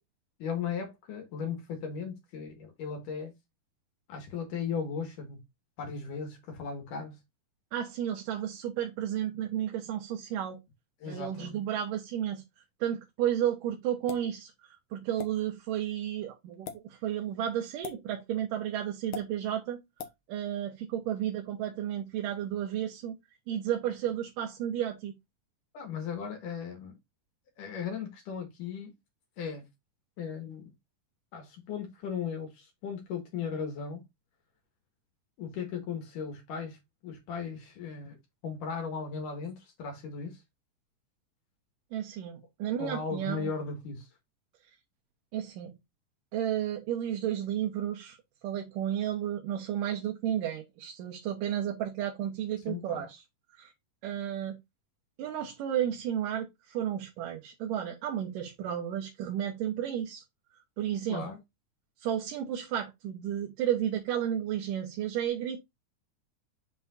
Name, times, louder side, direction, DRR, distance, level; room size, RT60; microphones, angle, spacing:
voice 1, 0.4-3.3 4.1-5.4 5.8-7.2 11.0-11.6 25.7-27.0 27.6-28.9 29.4-29.7 30.2-30.7 31.3-34.0 35.4-38.2 38.4-40.4 42.8-44.1 52.7-53.1 61.1-61.4, left 6 dB, 80° left, 3.3 m, -37 dB
voice 2, 7.7-10.6 11.1-12.4 12.8-14.5 14.9-19.8 20.3-23.2 23.5-25.1 41.9-43.5 45.3-45.7 46.3-48.2 48.4-53.2 53.6-53.7 54.0-54.6 55.2-60.2 60.8-61.2 62.0-65.6, right 10 dB, 85° right, 2.7 m, -32 dB
sound 1, 14.1-14.3 15.2-15.3 16.5-16.8 17.8-18.0 19.1-19.3 20.0-20.2, left 8 dB, 60° left, 1.4 m, -39 dB
7.0 x 5.7 x 2.6 m
omnidirectional pair, 3.7 m